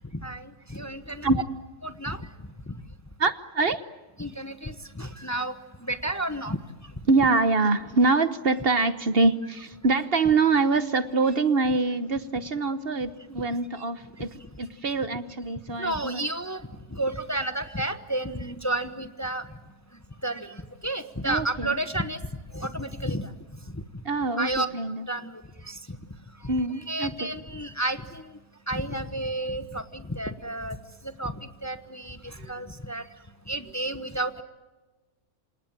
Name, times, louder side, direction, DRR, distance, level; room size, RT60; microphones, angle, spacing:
voice 1, 0.1-1.4 1.8-2.2 2.7-2.8 4.2-5.5 5.8-6.6 15.8-16.6 16.9-19.5 20.2-22.2 22.5-23.3 24.4-24.7 25.1-26.0 26.4-26.5 26.9-28.3 28.7-30.8 31.0-33.0 33.5-34.3, right 1 dB, 15° left, 9 dB, 1.0 m, -31 dB
voice 2, 3.2-3.8 7.1-16.2 21.2-21.7 24.0-25.1 26.5-27.3 32.4-32.5, right 3 dB, 50° right, 12 dB, 1.2 m, -25 dB
28.0 x 27.0 x 7.4 m, 1.3 s
omnidirectional pair, 1.3 m